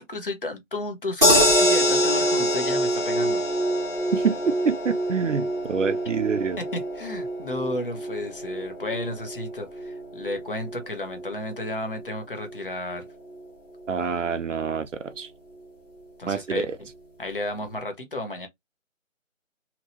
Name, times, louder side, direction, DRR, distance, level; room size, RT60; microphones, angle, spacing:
voice 1, 0.0-3.4 6.6-13.0 16.2-16.7 17.2-18.5, left 2 dB, 40° left, 1.0 m, -33 dB
sound 1, 1.2-13.4 13.8-13.9 14.2-14.3, equal, 5° left, 1.0 m, -26 dB
voice 2, 4.1-6.6 13.9-15.3 16.2-16.8, right 6 dB, 65° right, 0.6 m, -26 dB
2.9 x 2.8 x 2.8 m
figure-of-eight pair, 165°, 40 cm